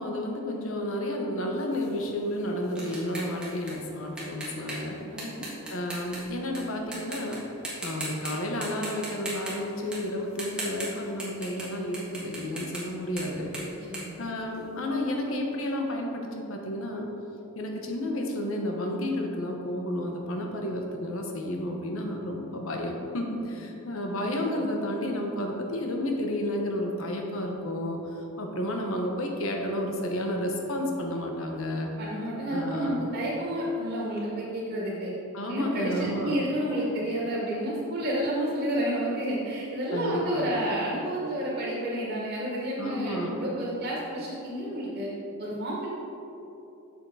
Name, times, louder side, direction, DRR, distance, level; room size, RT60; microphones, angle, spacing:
voice 1, 0.0-5.0 5.7-7.4 7.8-13.5 14.2-17.1 17.5-28.0 28.4-31.9 32.5-33.0 35.3-36.4 39.9-40.5 42.8-43.4, left 1 dB, 65° left, 1 dB, 1.0 m, -31 dB
sound 1, 1.7-6.6 6.9-7.4 7.6-8.3 8.6-11.7 11.9-14.9, right 1 dB, 5° right, 1.5 m, -39 dB
voice 2, 5.1-5.4 13.9-14.1 24.1-24.3 31.9-35.1 35.5-45.1 45.4-45.9, right 1 dB, 45° right, -6 dB, 1.8 m, -30 dB
7.3 x 6.5 x 4.7 m, 3.0 s
head